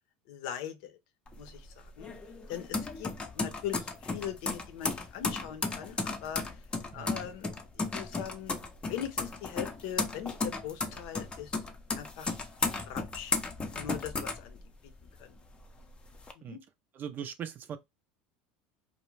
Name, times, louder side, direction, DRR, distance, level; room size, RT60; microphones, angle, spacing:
voice 1, 0.3-1.0 1.4-2.1 2.5-6.4 6.9-11.6 12.0-12.3 12.9-13.3 13.7-14.6 15.2-15.4 16.4-16.6, left 10 dB, 70° left, 0.6 m, -41 dB
sound 1, 1.3-15.1 15.5-16.3, left 3 dB, 20° left, 0.6 m, -35 dB
voice 2, 6.9-7.3 16.4-16.6 16.9-17.8, right 8 dB, 40° right, 0.5 m, -40 dB
2.4 x 2.1 x 3.1 m
supercardioid pair, 95°, 5 cm